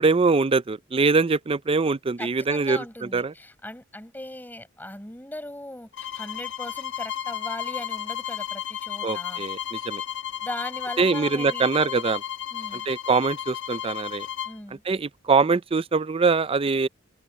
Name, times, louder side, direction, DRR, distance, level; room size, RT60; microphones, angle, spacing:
voice 1, 0.0-3.3 9.0-10.0 11.0-12.2 12.7-14.3 14.8-16.9, right 4 dB, 30° right, 0.4 m, -23 dB
voice 2, 2.2-9.4 10.4-11.7 12.5-12.9 14.5-14.8, left 1 dB, 10° left, 5.2 m, -38 dB
sound 1, 5.9-14.6, left 10 dB, 65° left, 1.8 m, -33 dB
head